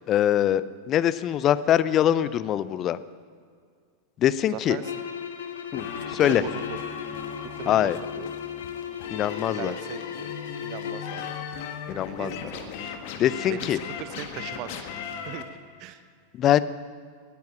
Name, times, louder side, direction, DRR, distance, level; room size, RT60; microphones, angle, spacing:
voice 1, 0.1-3.0 4.2-4.8 5.7-5.9 6.1-6.4 7.7-8.0 9.1-9.7 11.9-12.3 13.2-13.8 16.4-16.6, left 11 dB, 30° left, 16 dB, 0.6 m, -23 dB
voice 2, 4.5-5.0 6.2-6.8 7.6-8.3 9.6-10.3 10.6-11.2 12.1-12.7 13.5-13.7 14.0-14.7 15.2-15.4 15.8-16.0, right 12 dB, 40° right, 11 dB, 1.0 m, -38 dB
sound 1, 4.8-11.1, left 8 dB, 65° left, 1.5 m, -36 dB
sound 2, 5.7-15.4, left 7 dB, 50° left, 1.6 m, -38 dB
18.5 x 10.5 x 7.4 m, 2.1 s
figure-of-eight pair, 90°, 0 cm